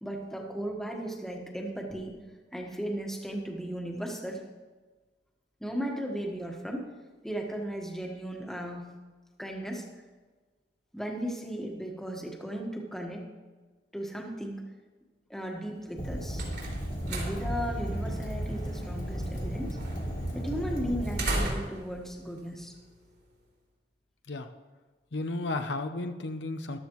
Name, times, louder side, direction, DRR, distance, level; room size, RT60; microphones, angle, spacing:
voice 1, 0.0-2.2 2.5-4.4 5.6-6.9 7.2-8.9 9.4-9.8 10.9-13.3 13.9-14.6 15.3-16.4 17.1-19.8 20.3-22.7, equal, ahead, 0 dB, 1.4 m, -36 dB
sound 1, 15.9-23.3, right 2 dB, 65° right, 3.6 m, -38 dB
Fire, 16.0-21.4, equal, 45° left, 1.8 m, -34 dB
voice 2, 25.1-26.8, left 2 dB, 80° left, 7 dB, 0.8 m, -33 dB
14.0 x 12.5 x 3.1 m, 1.3 s
head